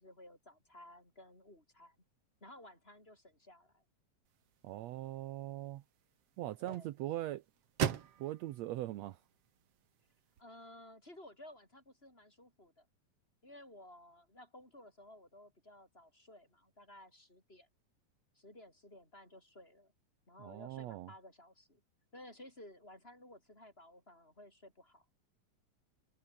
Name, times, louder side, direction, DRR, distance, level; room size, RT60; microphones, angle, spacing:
voice 1, 0.0-2.0 2.4-3.8 6.6-6.9 10.4-12.9 13.4-17.7 18.3-19.9 20.3-21.8 22.1-25.0, left 1 dB, 20° left, 6.9 m, -56 dB
sound 1, 4.3-10.4, right 9 dB, 60° right, 2.4 m, -43 dB
voice 2, 4.6-5.8 6.4-7.4 8.2-9.2 20.4-21.1, right 15 dB, 75° right, 1.9 m, -41 dB
omnidirectional pair, 3.3 m